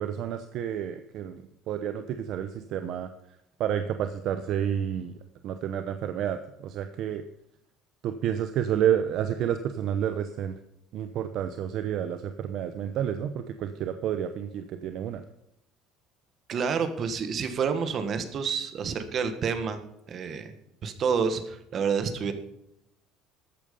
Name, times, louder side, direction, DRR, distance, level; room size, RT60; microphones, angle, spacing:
voice 1, 0.0-3.1 3.6-5.2 5.4-7.2 8.0-10.6 10.9-15.2, right 9 dB, 50° right, 9 dB, 0.8 m, -30 dB
voice 2, 16.5-19.8 20.1-20.5 20.8-22.3, right 6 dB, 30° right, 8 dB, 1.6 m, -28 dB
13.5 x 8.9 x 5.4 m, 0.81 s
cardioid pair, 160°, 0 cm